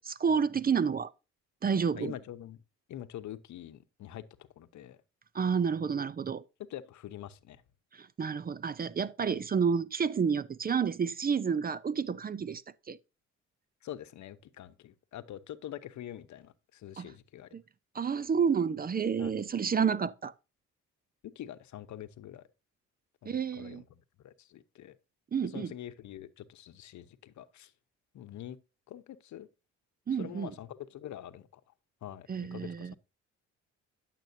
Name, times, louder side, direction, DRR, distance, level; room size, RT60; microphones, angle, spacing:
voice 1, 0.2-1.1 1.6-2.1 5.3-6.4 7.9-12.6 12.9-13.0 17.0-17.1 17.5-17.6 17.9-20.3 23.3-23.8 25.3-25.7 30.1-30.5 32.3-33.0, right 6 dB, 30° right, 0.5 m, -30 dB
voice 2, 2.0-2.6 2.9-5.0 6.7-7.6 13.8-17.5 19.2-19.3 21.2-22.5 23.2-25.0 25.4-27.7 28.1-28.6 28.9-29.5 30.2-31.6 32.0-33.0, left 11 dB, 70° left, 0.9 m, -45 dB
10.5 x 7.5 x 2.7 m
cardioid pair, 90°, 30 cm